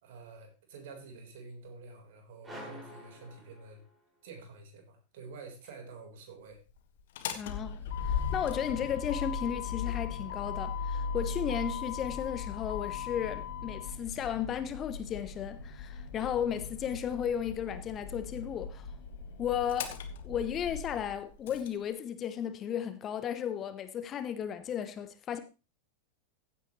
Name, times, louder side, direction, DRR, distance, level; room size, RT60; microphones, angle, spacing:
voice 1, 0.0-3.8 4.2-6.6, right 4 dB, 55° right, 4.0 m, -48 dB
sound 1, 2.4-4.2, equal, 10° right, 5.5 m, -48 dB
Motor vehicle (road), 7.0-21.7, left 6 dB, 55° left, 1.5 m, -38 dB
voice 2, 7.3-7.8 8.1-18.9 19.4-20.0 20.2-25.4, left 9 dB, 30° left, 1.0 m, -34 dB
15.5 x 9.4 x 3.1 m
figure-of-eight pair, 90°, 0 cm